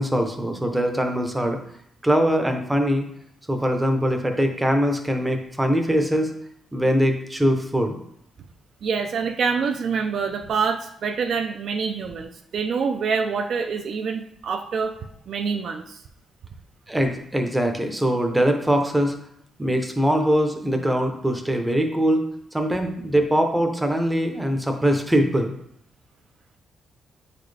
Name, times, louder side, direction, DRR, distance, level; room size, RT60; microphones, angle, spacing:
voice 1, 0.0-1.6 2.0-3.1 3.5-6.3 6.7-8.0 16.9-19.1 19.6-22.3 22.5-25.5, equal, 5° right, 4 dB, 0.7 m, -22 dB
voice 2, 8.8-14.9 15.3-16.0, right 5 dB, 55° right, 5 dB, 0.5 m, -26 dB
8.7 x 4.1 x 3.3 m, 0.72 s
wide cardioid pair, 170°, 0 cm